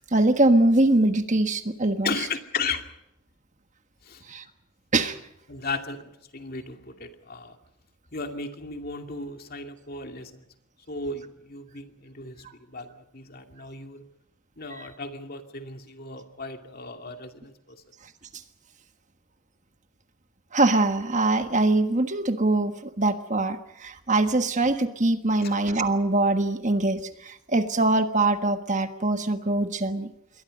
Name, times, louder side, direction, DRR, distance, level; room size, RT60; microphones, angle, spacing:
voice 1, 0.1-2.1 4.3-4.4 4.9-5.2 20.5-30.1, right 2 dB, 35° right, 8 dB, 1.4 m, -23 dB
voice 2, 2.0-2.9 4.0-4.2 5.5-7.6 8.1-10.4 10.9-14.1 14.6-17.8 25.4-25.5, left 4 dB, 45° left, 5 dB, 2.5 m, -35 dB
28.0 x 23.0 x 5.3 m, 0.79 s
head